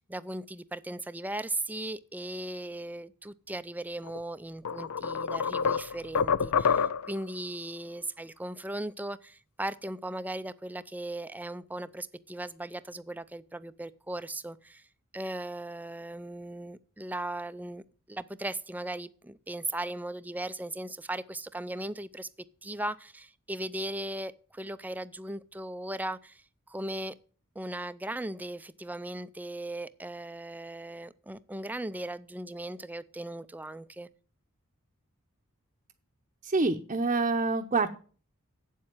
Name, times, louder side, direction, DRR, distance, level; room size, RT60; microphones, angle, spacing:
voice 1, 0.0-14.9 15.1-22.3 22.6-27.1 27.6-34.1, right 1 dB, 10° right, 0.4 m, -38 dB
sound 1, 4.1-4.2 4.7-7.2, left 6 dB, 80° left, 0.5 m, -27 dB
voice 2, 36.4-37.9, right 3 dB, 35° right, 0.8 m, -26 dB
8.4 x 7.6 x 8.9 m
head